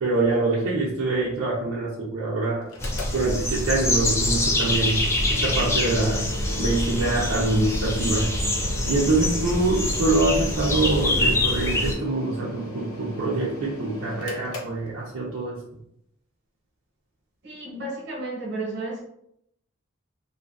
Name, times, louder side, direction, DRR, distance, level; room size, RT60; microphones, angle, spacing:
voice 1, 0.0-2.7 3.1-6.2 6.6-8.3 8.9-15.6, right 2 dB, 70° right, -6 dB, 0.5 m, -25 dB
Mechanical fan, 2.6-15.4, left 1 dB, 75° left, 0.5 m, -38 dB
sound 1, 2.8-11.9, left 1 dB, 15° left, 0.3 m, -25 dB
voice 2, 17.4-19.0, right 2 dB, 50° right, -3 dB, 1.0 m, -32 dB
2.6 x 2.3 x 2.3 m, 0.74 s
head